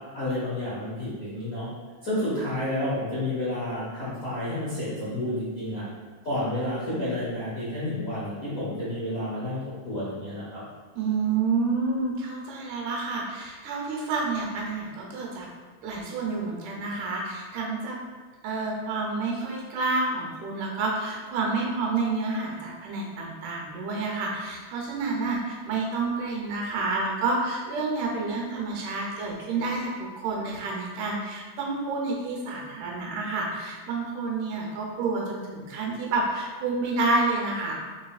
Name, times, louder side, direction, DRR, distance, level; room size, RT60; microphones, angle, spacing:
voice 1, 0.1-1.7 2.0-5.8 6.2-10.6, left 1 dB, 85° left, -11 dB, 0.7 m, -30 dB
voice 2, 11.0-15.5 15.8-18.0 18.4-37.7, right 3 dB, 85° right, -1 dB, 2.4 m, -29 dB
4.7 x 4.1 x 2.3 m, 1.4 s
omnidirectional pair, 3.5 m